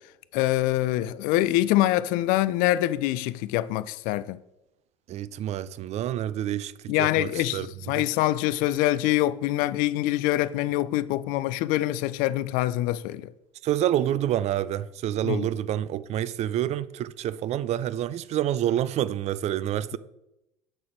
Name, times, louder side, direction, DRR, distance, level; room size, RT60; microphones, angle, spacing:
voice 1, 0.3-4.4 6.9-13.3 15.2-15.4, left 15 dB, 55° left, 0.4 m, -25 dB
voice 2, 5.1-7.7 7.9-8.0 13.6-20.0, right 11 dB, 40° right, 0.4 m, -28 dB
7.7 x 6.3 x 4.4 m
hypercardioid pair, 70°, 17 cm